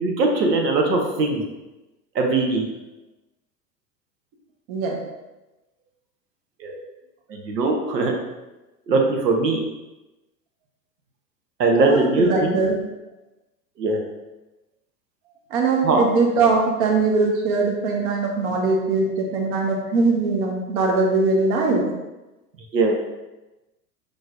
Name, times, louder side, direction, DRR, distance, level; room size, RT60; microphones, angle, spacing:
voice 1, 0.0-1.4 2.1-2.6 6.6-6.8 7.3-8.1 8.9-9.6 11.6-12.6 13.8-14.0 15.8-16.0 22.7-22.9, right 3 dB, 80° right, 2 dB, 1.0 m, -20 dB
voice 2, 11.8-12.7 15.5-21.8, right 3 dB, 55° right, 0 dB, 1.2 m, -21 dB
5.0 x 3.9 x 2.5 m, 1.0 s
hypercardioid pair, 95°, 49 cm